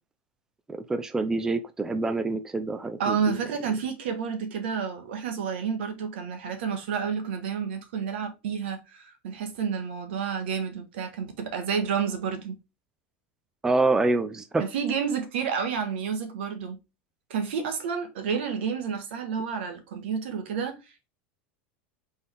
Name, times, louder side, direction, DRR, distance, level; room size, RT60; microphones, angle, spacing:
voice 1, 0.7-3.4 13.6-14.6, right 3 dB, 10° right, 0.4 m, -26 dB
voice 2, 3.0-12.5 14.6-16.8 17.3-20.8, right 6 dB, 80° right, 1.2 m, -30 dB
4.3 x 3.4 x 3.3 m
supercardioid pair, 120°, 6 cm